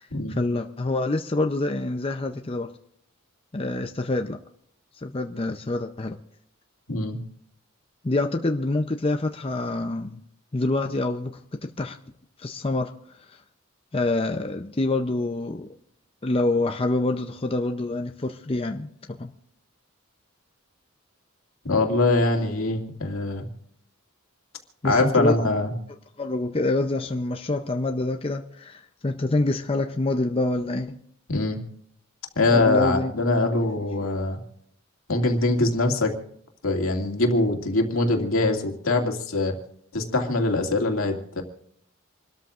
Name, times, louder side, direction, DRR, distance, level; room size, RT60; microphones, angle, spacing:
voice 1, 0.4-2.7 3.5-4.4 5.0-6.2 8.0-10.2 10.5-11.3 11.6-12.0 12.4-12.9 13.3-13.4 13.9-15.7 16.2-19.3 24.8-25.4 26.2-31.0 32.5-33.1 33.6-33.7 34.0-34.1, left 2 dB, 25° left, 5 dB, 0.6 m, -26 dB
voice 2, 21.6-23.4 24.8-25.7 31.3-31.6 32.4-34.4 35.1-36.1 36.6-39.6 39.9-41.4, left 2 dB, 80° left, 2 dB, 2.3 m, -23 dB
27.5 x 13.0 x 2.5 m, 0.68 s
head